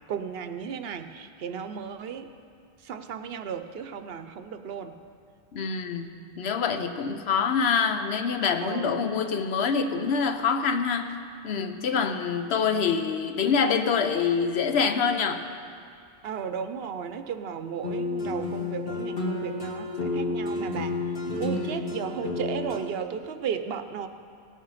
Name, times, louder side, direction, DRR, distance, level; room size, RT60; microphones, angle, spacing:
voice 1, 0.1-2.3 2.8-4.9 8.6-9.1 16.2-21.0 21.4-24.1, right 7 dB, 70° right, 9 dB, 0.8 m, -35 dB
voice 2, 5.5-11.2 11.4-15.4 21.5-21.7, left 6 dB, 75° left, 8 dB, 1.0 m, -26 dB
sound 1, 17.8-22.8, left 2 dB, 60° left, 1.6 m, -30 dB
17.5 x 6.5 x 5.7 m, 2.3 s
omnidirectional pair, 1.1 m